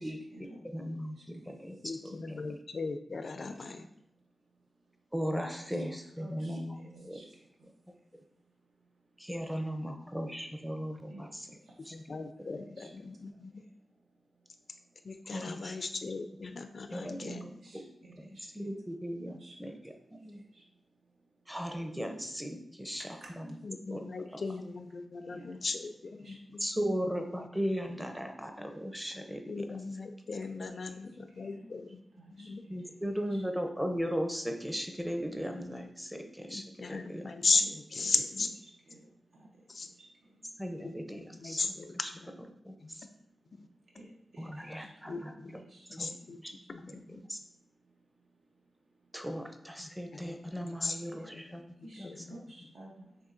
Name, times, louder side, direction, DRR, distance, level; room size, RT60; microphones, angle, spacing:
voice 1, 0.0-0.6 1.2-1.3 6.2-7.3 11.1-11.3 12.8-12.9 17.2-17.8 18.3-18.4 19.2-19.5 20.5-20.6 23.0-23.3 24.4-24.5 25.2-25.4 25.8-25.9 26.2-26.4 30.9-31.0 31.4-31.6 32.2-32.8 33.3-33.4 37.6-38.2 38.9-39.0 39.3-39.5 44.0-44.1 44.3-46.1 51.1-51.3 51.8-53.0, right 2 dB, 85° right, -2 dB, 0.8 m, -52 dB
voice 2, 0.6-1.8 2.0-2.4 5.1-6.8 7.0-7.2 9.2-11.5 11.9-12.0 15.3-15.8 16.9-17.3 17.7-17.8 18.2-18.3 18.5-19.7 20.2-20.4 21.5-23.0 23.4-23.5 23.9-24.0 24.3-24.4 26.6-29.4 32.7-37.3 40.6-41.7 42.0-42.1 42.6-43.1 44.4-45.3 46.0-46.1 46.4-46.5 46.9-47.4 49.1-51.6 52.0-52.1, equal, 5° right, 4 dB, 0.5 m, -37 dB
voice 3, 1.8-3.9 11.9-13.6 15.0-17.6 23.6-26.6 29.5-32.0 32.3-32.6 36.5-38.5 39.7-39.9 40.8-42.3 42.8-43.1 43.5-43.7 45.1-45.6 45.9-46.4 46.7-47.2 49.8-51.6 52.0-52.4, left 4 dB, 55° left, 7 dB, 0.3 m, -37 dB
7.0 x 3.0 x 2.5 m, 0.83 s
wide cardioid pair, 125°, 0 cm